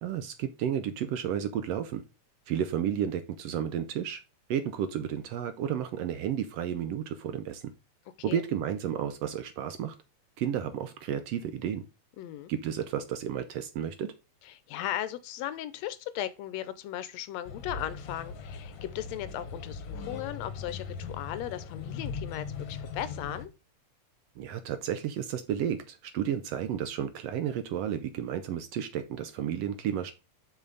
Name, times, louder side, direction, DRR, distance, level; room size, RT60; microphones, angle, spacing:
voice 1, 0.0-2.0 2.5-4.2 4.5-7.6 8.2-9.9 10.4-11.8 12.5-14.1 24.4-30.1, right 9 dB, 75° right, 1.6 m, -32 dB
voice 2, 12.2-12.5 14.4-23.5, left 12 dB, 80° left, 1.7 m, -37 dB
sound 1, 17.5-23.4, left 5 dB, 55° left, 1.5 m, -39 dB
6.7 x 5.7 x 3.9 m
omnidirectional pair, 3.3 m